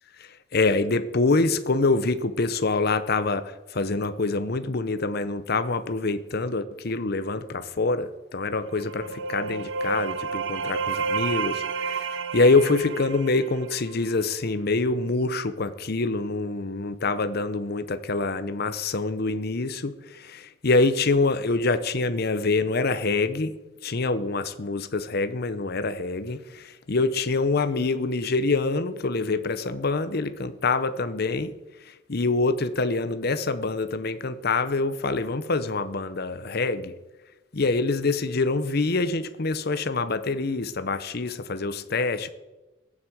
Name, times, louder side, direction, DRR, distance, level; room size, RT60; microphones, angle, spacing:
voice 1, 0.2-23.6 23.8-31.5 31.8-36.9 37.5-42.3, left 3 dB, 50° left, 0.8 m, -25 dB
sound 1, 8.6-14.3, right 5 dB, 70° right, 0.8 m, -31 dB
18.0 x 7.6 x 7.7 m
head